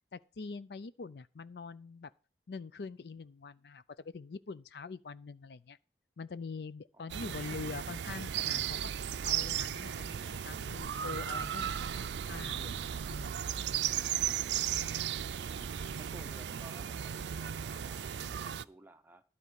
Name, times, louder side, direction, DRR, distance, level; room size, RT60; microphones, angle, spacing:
voice 1, 0.1-2.1 2.5-5.8 6.2-8.9 9.2-12.8 13.1-13.4, left 4 dB, 70° left, 0.5 m, -44 dB
voice 2, 6.9-7.5 15.3-15.4 16.1-19.2, right 1 dB, 10° right, 0.7 m, -56 dB
sound 1, 7.1-18.6, right 9 dB, 85° right, 0.4 m, -36 dB
12.0 x 4.2 x 8.1 m
head